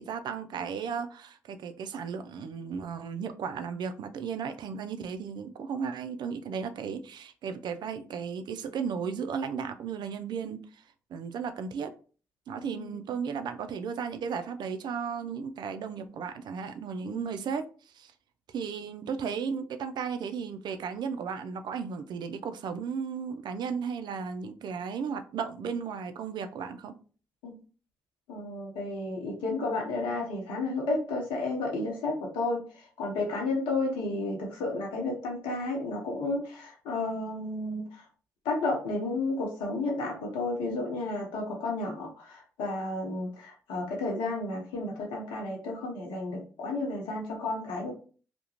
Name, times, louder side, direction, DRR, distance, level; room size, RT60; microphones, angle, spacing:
voice 1, 0.0-10.8 11.1-11.9 12.5-17.7 17.9-18.1 18.5-26.9, right 6 dB, 60° right, 0.4 m, -35 dB
voice 2, 12.6-13.0 17.1-17.4 27.4-27.5 28.3-38.0 38.4-48.0, left 2 dB, 75° left, 0.7 m, -32 dB
2.4 x 2.1 x 2.8 m
hypercardioid pair, 40°, 8 cm